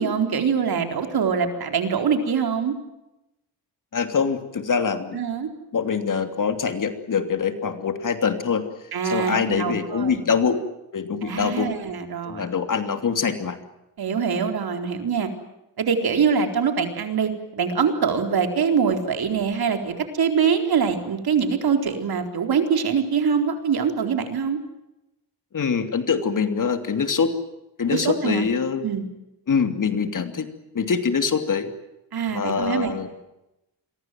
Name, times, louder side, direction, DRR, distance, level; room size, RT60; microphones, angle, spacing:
voice 1, 0.0-2.7 5.1-5.5 8.9-10.2 11.2-12.5 14.0-15.3 15.8-24.6 27.9-28.5 28.8-29.1 32.1-32.9, right 6 dB, 60° right, 5 dB, 4.2 m, -23 dB
voice 2, 3.9-5.2 5.7-8.6 9.0-10.6 10.9-11.7 12.2-13.6 25.5-27.3 27.8-28.9 29.5-30.5 30.7-31.7 32.3-33.1, left 6 dB, 45° left, 8 dB, 3.0 m, -24 dB
28.5 x 23.0 x 7.7 m, 0.93 s
cardioid pair, 120°, 42 cm